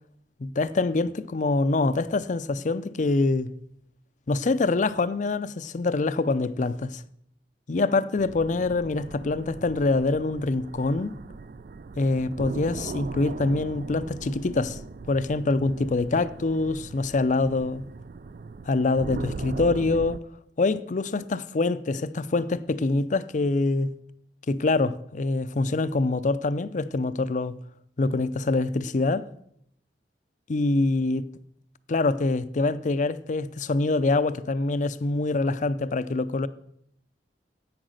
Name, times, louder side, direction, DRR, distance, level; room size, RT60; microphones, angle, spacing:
voice 1, 0.4-3.5 4.3-7.0 7.7-11.2 12.0-14.8 15.1-17.8 18.7-20.2 20.6-23.9 24.5-27.6 28.0-29.3 30.5-31.3 31.9-36.5, left 3 dB, 45° left, 0.5 m, -25 dB
sound 1, 8.2-20.2, right 4 dB, 50° right, 0.4 m, -39 dB
10.0 x 8.6 x 6.4 m
head